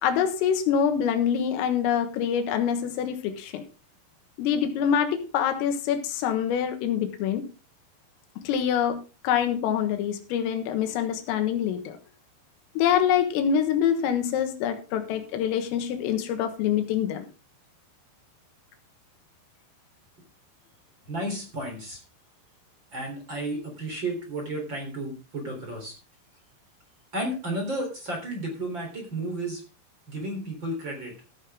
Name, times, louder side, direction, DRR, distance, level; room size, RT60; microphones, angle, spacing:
voice 1, 0.0-3.6 4.4-7.5 8.5-12.0 12.8-17.3, left 8 dB, 85° left, 7 dB, 4.0 m, -25 dB
voice 2, 21.1-22.0 22.9-26.0 27.1-29.6 30.1-31.1, right 1 dB, 25° right, 1 dB, 3.5 m, -32 dB
14.0 x 9.9 x 3.6 m, 0.33 s
omnidirectional pair, 5.9 m